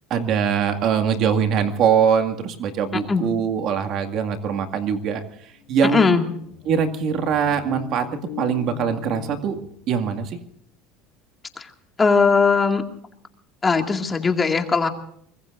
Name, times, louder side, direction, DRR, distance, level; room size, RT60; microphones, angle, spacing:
voice 1, 0.1-5.2 5.7-6.1 6.7-8.1 8.4-9.6 9.9-10.4, right 7 dB, 50° right, 6 dB, 2.1 m, -22 dB
voice 2, 2.9-3.2 5.8-6.3 11.6-11.7 12.0-12.8 13.6-14.9, left 4 dB, 20° left, 4 dB, 2.2 m, -19 dB
sound 1, 5.2-10.2, left 9 dB, 70° left, 2.1 m, -39 dB
24.5 x 21.0 x 2.6 m, 0.67 s
supercardioid pair, 120°, 0 cm